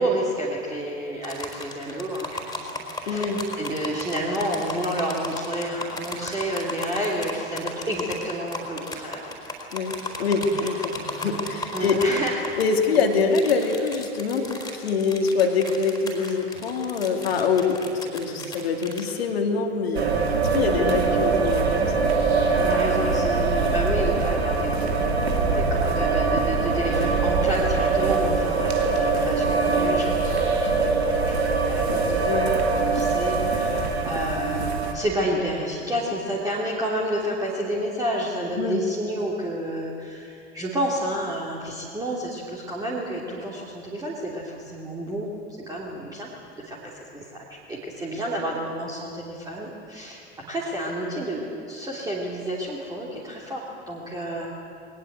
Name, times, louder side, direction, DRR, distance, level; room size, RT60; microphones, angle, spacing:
voice 1, 0.0-2.7 3.0-9.3 10.5-10.7 11.7-12.6 12.8-13.0 20.6-21.0 22.6-24.7 25.5-45.3 45.7-46.3 46.6-54.5, right 1 dB, 10° right, -4 dB, 3.2 m, -30 dB
sound 1, 1.2-19.1, left 2 dB, 10° left, 4.3 m, -35 dB
voice 2, 3.1-3.4 9.7-9.9 10.2-12.0 12.6-20.1 20.5-21.9 32.3-32.5 38.6-38.8, left 5 dB, 60° left, 3 dB, 2.6 m, -24 dB
sound 2, 19.9-34.9, right 4 dB, 65° right, 2.8 m, -23 dB
22.0 x 19.5 x 8.3 m, 2.5 s
figure-of-eight pair, 85°, 34 cm